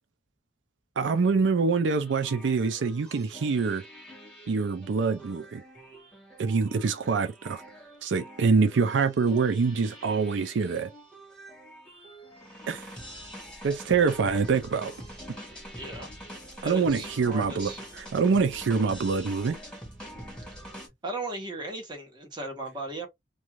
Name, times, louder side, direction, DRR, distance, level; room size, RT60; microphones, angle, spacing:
voice 1, 1.0-3.8 4.5-5.6 6.4-7.6 8.0-10.9 12.7-12.9 13.6-14.9 16.6-19.6, right 5 dB, 85° right, 0.4 m, -25 dB
sound 1, 2.0-20.9, equal, 5° left, 1.2 m, -45 dB
voice 2, 15.7-16.1 16.6-17.8 21.0-23.1, right 2 dB, 25° right, 1.2 m, -36 dB
2.6 x 2.3 x 3.0 m
head